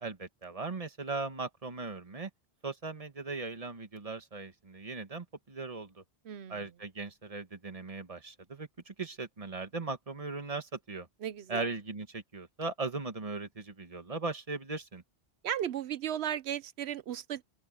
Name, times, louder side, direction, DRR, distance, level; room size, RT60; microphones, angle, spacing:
voice 1, 0.0-2.3 2.6-5.9 6.5-11.1 11.5-15.0, right 3 dB, 35° right, 1.5 m, -38 dB
voice 2, 6.2-6.6 11.2-11.7 15.4-17.4, right 10 dB, 85° right, 1.0 m, -35 dB
open air
omnidirectional pair, 1.1 m